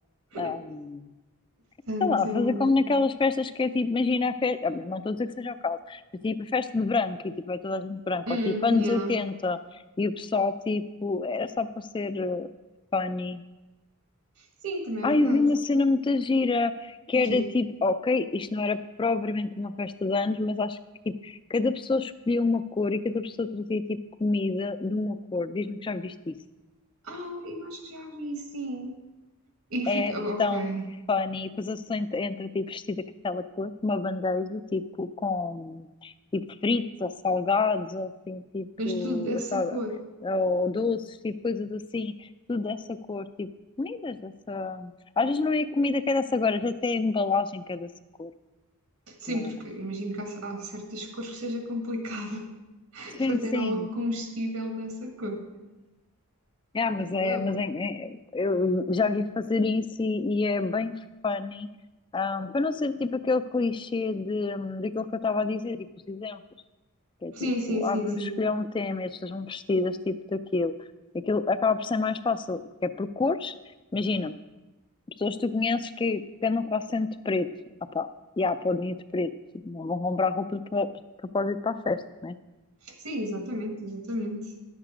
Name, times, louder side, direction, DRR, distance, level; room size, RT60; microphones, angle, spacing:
voice 1, 0.4-1.1 2.0-12.5 12.9-13.4 15.0-20.8 21.1-26.3 29.9-30.1 30.4-30.7 31.1-39.8 40.2-43.5 43.8-47.9 48.2-48.3 49.3-49.5 53.1-53.9 56.7-61.7 62.1-66.4 67.2-70.7 71.2-73.5 73.9-74.4 75.2-77.5 77.9-78.1 78.4-79.3 79.7-80.9 81.3-82.4, left 3 dB, 20° left, 12 dB, 0.3 m, -28 dB
voice 2, 1.9-2.7 8.3-9.2 14.6-15.5 17.1-17.5 27.0-29.0 29.7-30.8 38.8-39.9 49.1-52.4 52.9-55.4 57.2-57.5 67.3-68.4 82.8-84.5, equal, 80° right, 3 dB, 1.6 m, -32 dB
11.0 x 7.5 x 5.0 m, 1.1 s
head